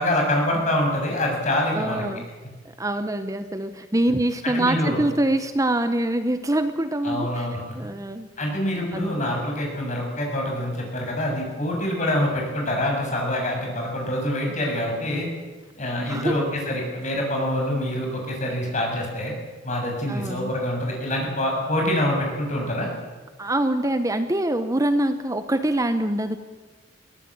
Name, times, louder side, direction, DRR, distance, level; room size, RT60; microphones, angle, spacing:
voice 1, 0.0-2.0 4.4-5.0 7.0-7.6 8.4-15.3 15.8-19.3 19.6-22.9, left 1 dB, 40° left, 1 dB, 7.1 m, -25 dB
voice 2, 1.7-2.3 2.6-7.5 7.7-8.3 8.9-9.3 15.9-16.4 20.1-20.5 23.4-26.4, right 1 dB, 20° right, 9 dB, 0.9 m, -24 dB
22.0 x 17.5 x 8.7 m, 1.3 s
head